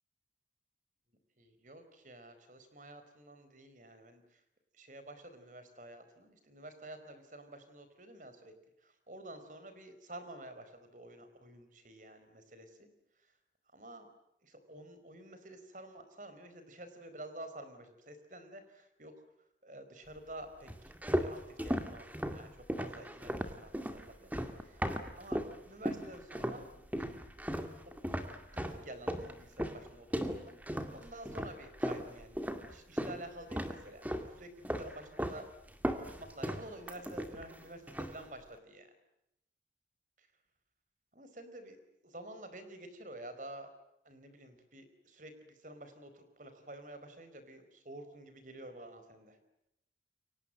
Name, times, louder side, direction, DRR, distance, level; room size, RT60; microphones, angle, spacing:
voice 1, 1.4-4.4 4.7-8.5 8.8-12.9 13.7-14.1 14.4-19.1 19.6-24.8 25.1-25.4 25.7-27.1 27.8-30.6 30.9-32.4 32.7-35.5 36.0-38.9 40.2-40.3 41.1-43.7 44.0-49.4, right 1 dB, 45° right, 9 dB, 4.7 m, -50 dB
sound 1, 20.7-25.6 25.9-26.6 26.9-33.2 33.5-34.3 34.7-35.4 35.7-37.6 37.9-38.2, equal, 10° right, 2.2 m, -36 dB
29.5 x 24.0 x 7.8 m, 0.82 s
head